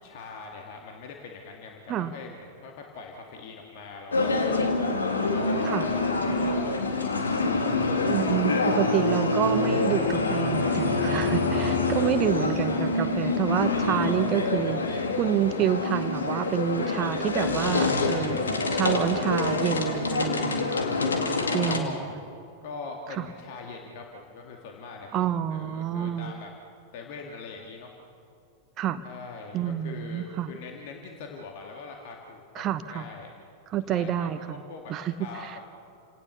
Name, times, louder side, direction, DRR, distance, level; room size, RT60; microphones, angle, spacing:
voice 1, 0.0-4.4 5.1-7.8 8.5-8.9 11.9-12.3 21.5-22.0 22.6-26.5 26.9-27.9 29.0-33.3 33.9-35.6, left 4 dB, 50° left, 1 dB, 2.2 m, -42 dB
sound 1, 4.1-21.8, left 3 dB, 75° left, 2.2 m, -26 dB
voice 2, 8.1-18.4 18.7-20.9 21.5-22.1 23.2-23.3 25.1-26.3 28.8-29.0 29.5-30.5 32.5-33.0 33.7-34.6 34.9-35.6, right 10 dB, 35° right, 10 dB, 1.0 m, -28 dB
29.0 x 18.0 x 7.0 m, 2.5 s
figure-of-eight pair, 90°, 0 cm